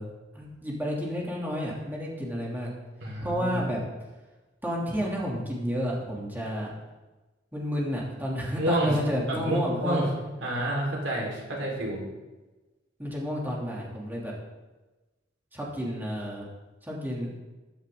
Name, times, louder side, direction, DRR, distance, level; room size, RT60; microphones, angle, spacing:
voice 1, 0.0-2.7 3.2-3.8 4.6-6.7 7.5-10.1 13.0-14.3 15.5-16.5 16.9-17.3, equal, 10° right, -4 dB, 3.0 m, -31 dB
voice 2, 3.0-3.6 8.6-9.0 9.3-10.1 10.4-12.0, right 1 dB, 90° right, -2 dB, 4.7 m, -28 dB
14.5 x 12.5 x 3.9 m, 1.1 s
head